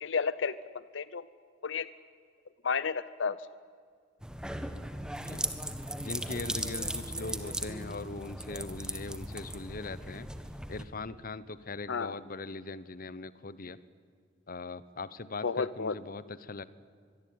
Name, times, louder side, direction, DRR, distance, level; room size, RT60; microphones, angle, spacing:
voice 1, 0.0-0.6 0.9-1.2 1.6-1.9 2.6-3.4 11.9-12.2 15.4-15.9, left 5 dB, 80° left, 16 dB, 0.7 m, -31 dB
sound 1, 4.2-10.8, right 1 dB, 5° right, 1.5 m, -37 dB
voice 2, 6.0-10.3 10.7-13.8 14.5-16.6, left 3 dB, 50° left, 16 dB, 1.0 m, -40 dB
24.5 x 22.5 x 9.6 m, 2.1 s
head